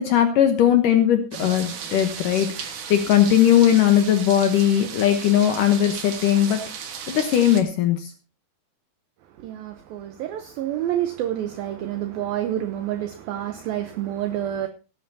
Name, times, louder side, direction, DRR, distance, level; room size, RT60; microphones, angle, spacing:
voice 1, 0.0-6.9 7.1-8.1, left 10 dB, 75° left, 2.0 m, -19 dB
sound 1, 1.3-7.6, right 7 dB, 60° right, 2.2 m, -35 dB
voice 2, 9.4-14.7, right 12 dB, 80° right, 2.2 m, -28 dB
18.5 x 11.0 x 2.8 m
omnidirectional pair, 5.2 m